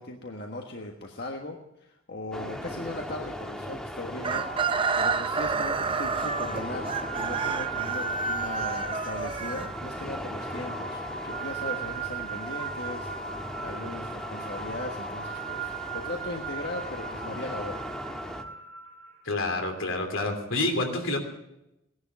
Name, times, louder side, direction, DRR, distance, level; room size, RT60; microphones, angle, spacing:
voice 1, 0.0-4.5 5.0-17.8, left 2 dB, 55° left, 1 dB, 1.5 m, -38 dB
sound 1, 2.3-18.4, equal, 5° left, 1.3 m, -39 dB
Chicken rooster, 4.2-10.2, right 4 dB, 25° right, 0.6 m, -30 dB
sound 2, 4.3-19.4, right 6 dB, 55° right, 2.8 m, -38 dB
voice 2, 19.2-21.2, left 2 dB, 75° left, 4 dB, 3.1 m, -28 dB
17.5 x 11.0 x 7.4 m, 0.87 s
head